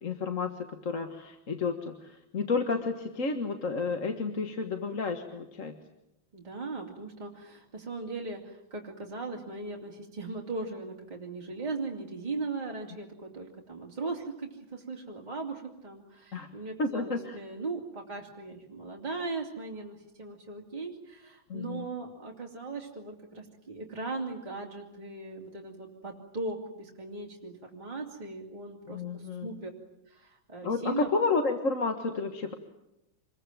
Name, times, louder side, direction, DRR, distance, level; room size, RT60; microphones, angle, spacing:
voice 1, 0.0-5.7 16.3-16.5 16.8-17.4 21.5-21.8 28.9-29.5 30.6-32.5, left 4 dB, 45° left, 5 dB, 1.8 m, -31 dB
voice 2, 6.3-29.7 30.1-31.1, right 3 dB, 20° right, -1 dB, 3.0 m, -38 dB
26.5 x 22.0 x 9.1 m, 0.87 s
omnidirectional pair, 2.1 m